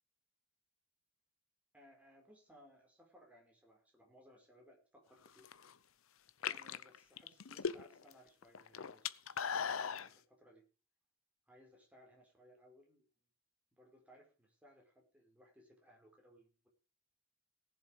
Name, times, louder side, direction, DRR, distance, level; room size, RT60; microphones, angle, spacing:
voice 1, 1.7-5.4 6.4-10.6 11.5-13.3 13.7-16.7, equal, 5° right, 0 dB, 4.6 m, -64 dB
sound 1, 5.3-5.7 6.3-8.1 8.4-10.1, left 7 dB, 75° left, 0.7 m, -39 dB
18.0 x 7.4 x 5.2 m, 0.35 s
head